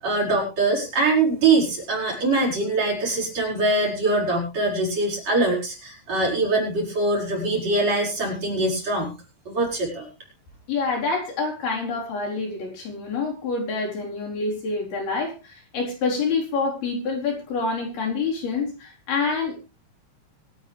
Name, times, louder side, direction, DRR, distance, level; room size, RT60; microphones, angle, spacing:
voice 1, 0.0-9.1 9.5-10.1, right 2 dB, 40° right, -4 dB, 6.2 m, -23 dB
voice 2, 10.7-19.6, left 4 dB, 60° left, -2 dB, 5.8 m, -27 dB
24.0 x 8.7 x 3.4 m, 0.29 s
omnidirectional pair, 5.1 m